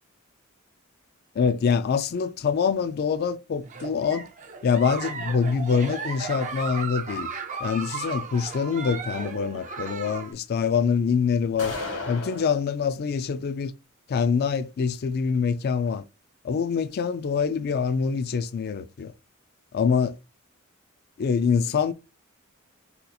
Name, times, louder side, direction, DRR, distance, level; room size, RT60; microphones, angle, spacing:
voice 1, 1.4-4.3 4.6-7.3 7.6-11.7 12.1-13.7 14.1-16.0 16.4-19.1 19.7-20.2 21.2-21.9, left 6 dB, 50° left, 0.3 m, -25 dB
Giggle, 3.6-10.3, right 5 dB, 35° right, 0.5 m, -35 dB
sound 1, 11.6-12.6, left 3 dB, 75° left, 1.3 m, -33 dB
4.0 x 2.8 x 2.3 m
head